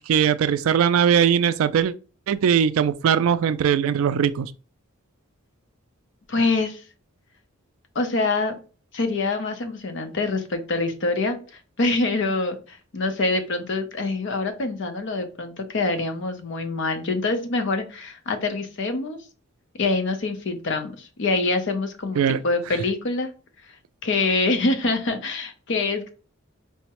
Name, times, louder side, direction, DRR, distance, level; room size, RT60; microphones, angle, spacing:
voice 1, 0.1-1.9 2.3-4.5 22.2-22.4, right 8 dB, 75° right, 0.3 m, -20 dB
voice 2, 6.3-6.8 8.0-8.5 8.9-11.4 11.8-19.2 19.8-23.3 24.0-26.1, left 3 dB, 60° left, 0.6 m, -25 dB
4.6 x 2.1 x 2.9 m
head